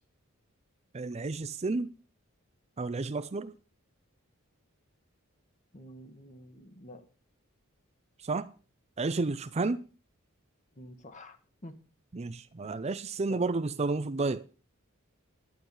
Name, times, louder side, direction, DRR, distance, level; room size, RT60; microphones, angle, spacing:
voice 1, 0.9-1.9 2.8-3.5 8.2-8.5 9.0-9.8 12.1-14.5, right 3 dB, 30° right, 0.5 m, -31 dB
voice 2, 5.7-7.0 10.8-11.4 11.6-11.7 13.3-13.4, left 1 dB, 35° left, 1.5 m, -48 dB
11.5 x 9.7 x 5.4 m
head